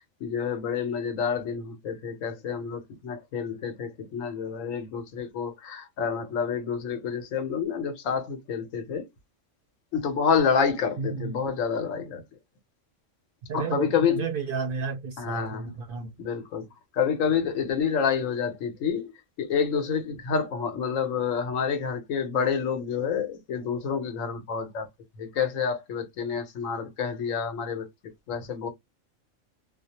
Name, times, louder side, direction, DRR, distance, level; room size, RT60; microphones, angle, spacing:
voice 1, 0.2-9.1 9.9-12.2 13.5-14.3 15.2-15.7 16.2-24.9 25.2-27.9 28.3-28.7, left 6 dB, 85° left, 1.1 m, -28 dB
voice 2, 11.0-11.4 13.5-16.1, right 5 dB, 60° right, 0.6 m, -32 dB
2.4 x 2.1 x 2.8 m
omnidirectional pair, 1.3 m